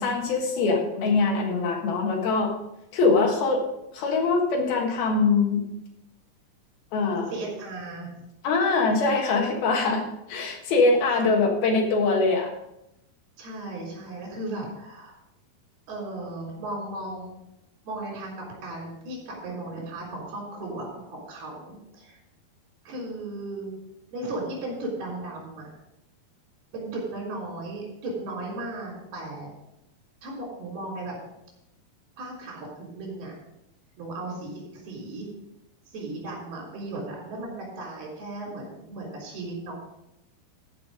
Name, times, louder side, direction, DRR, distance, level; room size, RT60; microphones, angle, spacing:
voice 1, 0.0-2.5 2.9-3.6 3.9-5.6 6.9-7.3 8.4-10.0 10.3-12.5, left 3 dB, 75° left, 2 dB, 3.4 m, -23 dB
voice 2, 7.3-8.1 8.9-9.1 11.1-11.2 13.4-15.2 15.9-17.4 17.9-22.2 22.9-23.7 24.1-25.7 26.7-29.5 30.2-31.2 32.2-33.3 34.0-35.3 35.9-39.7, right 2 dB, 80° right, -3 dB, 5.7 m, -36 dB
13.5 x 5.8 x 5.0 m, 0.86 s
omnidirectional pair, 4.5 m